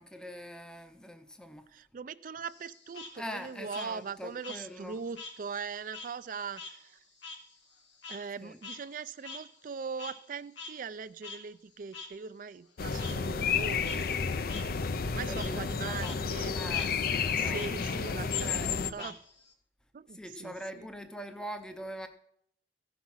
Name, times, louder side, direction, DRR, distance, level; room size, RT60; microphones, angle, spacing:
voice 1, 0.0-1.6 3.2-5.0 8.4-8.6 15.3-16.2 16.5-19.1 20.1-22.1, equal, 5° left, 7 dB, 0.5 m, -43 dB
voice 2, 1.7-6.9 8.1-14.0 15.0-16.5 17.4-19.2 19.9-20.9, right 5 dB, 45° right, 16 dB, 0.4 m, -41 dB
Frog, 2.5-5.4 5.7-10.3 10.6-10.7 11.2-11.4 11.9-12.1 13.0-13.1 13.7-14.0 14.5-14.6 15.0-15.5 15.9-16.2 16.5-16.9 17.5-17.7 18.3-19.5, left 4 dB, 85° left, 2.2 m, -45 dB
sound 1, 12.8-18.9, left 5 dB, 50° left, 0.5 m, -31 dB
15.5 x 6.0 x 5.6 m, 0.73 s
head